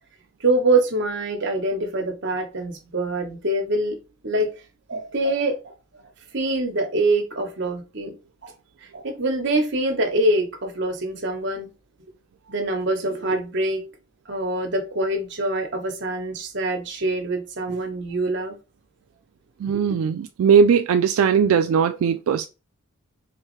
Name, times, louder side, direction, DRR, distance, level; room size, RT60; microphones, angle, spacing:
voice 1, 0.4-4.0 4.2-4.5 4.9-5.7 6.3-8.1 8.4-8.5 8.9-11.7 12.5-13.8 14.3-18.6 19.7-19.8, right 2 dB, 55° right, 1.2 m, -24 dB
voice 2, 19.6-22.5, right 6 dB, 85° right, 0.3 m, -19 dB
4.9 x 3.1 x 3.2 m
head